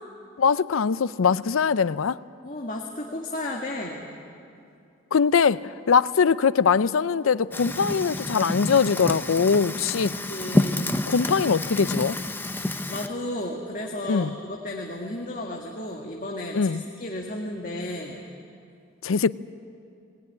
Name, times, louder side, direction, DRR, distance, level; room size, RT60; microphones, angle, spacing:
voice 1, 0.4-2.2 5.1-10.1 11.1-12.2 14.1-14.3 16.5-16.8 19.0-19.3, left 6 dB, 80° left, 17 dB, 0.5 m, -22 dB
voice 2, 2.4-4.0 10.3-10.9 12.9-18.2, left 1 dB, 40° left, -1 dB, 1.7 m, -33 dB
Fire, 7.5-13.1, left 1 dB, 10° left, 0.7 m, -28 dB
20.0 x 18.5 x 9.9 m, 2.5 s
head